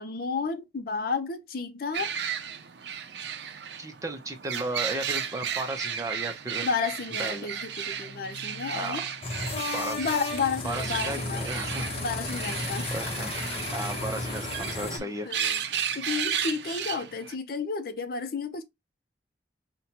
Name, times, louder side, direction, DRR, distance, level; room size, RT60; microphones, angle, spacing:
voice 1, 0.0-2.1 6.6-9.0 10.0-11.5 12.0-13.0 14.7-18.6, left 5 dB, 55° left, 0.5 m, -32 dB
sound 1, 1.9-17.3, right 8 dB, 75° right, 0.5 m, -34 dB
voice 2, 3.8-6.7 7.2-7.5 8.7-9.0 9.7-10.1 10.6-11.9 12.9-15.3, right 2 dB, 20° right, 0.6 m, -35 dB
sound 2, 9.2-15.0, left 2 dB, 35° left, 0.9 m, -33 dB
5.5 x 2.2 x 2.8 m
head